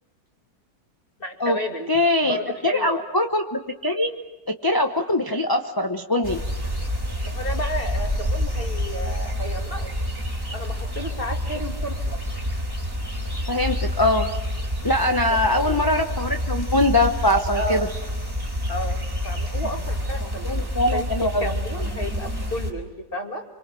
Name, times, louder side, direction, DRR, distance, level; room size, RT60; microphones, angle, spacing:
voice 1, 1.2-1.9 2.2-3.0 7.2-9.9 10.5-12.1 15.4-15.8 17.5-17.8 18.7-19.0 19.2-21.1 21.4-23.4, equal, 35° left, 2 dB, 2.8 m, -32 dB
voice 2, 1.9-2.4 2.6-4.1 4.5-6.4 13.5-14.3 14.8-17.9 20.4-21.4, left 1 dB, 15° left, 4 dB, 0.9 m, -22 dB
sound 1, 6.2-22.7, equal, 15° right, 3.5 m, -28 dB
27.0 x 24.5 x 7.7 m, 1.1 s
omnidirectional pair, 1.7 m